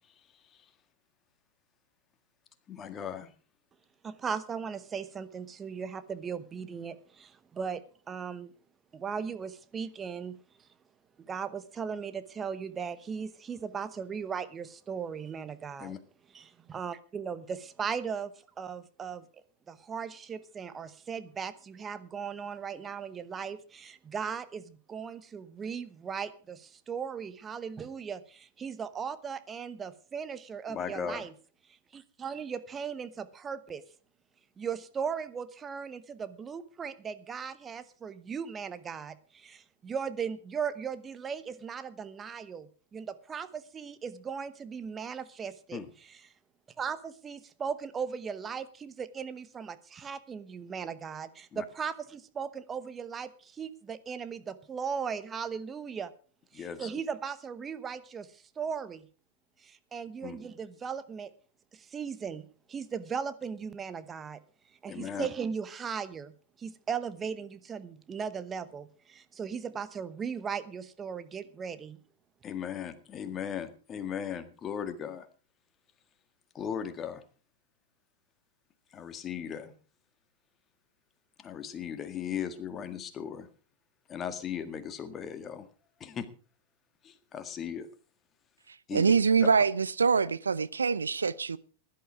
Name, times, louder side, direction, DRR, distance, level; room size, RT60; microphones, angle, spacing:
voice 1, 2.7-3.3 15.8-16.0 30.7-31.3 45.7-45.9 51.5-51.6 56.5-56.9 60.2-60.4 64.9-65.3 72.4-75.3 76.5-77.2 78.9-79.7 81.4-83.5 84.1-85.7 86.0-86.3 87.0-87.9 88.9-89.1, left 8 dB, 25° left, 1.8 m, -37 dB
voice 2, 4.0-8.5 8.9-10.4 11.2-15.9 16.3-18.3 18.6-19.2 19.7-31.3 31.9-33.8 34.6-45.8 46.8-56.1 56.5-59.1 59.6-61.3 61.7-64.4 64.8-66.3 66.6-72.0, right 6 dB, 20° right, 1.0 m, -37 dB
voice 3, 88.9-91.6, right 5 dB, 80° right, 0.6 m, -25 dB
16.0 x 11.5 x 4.7 m
figure-of-eight pair, 95°, 0 cm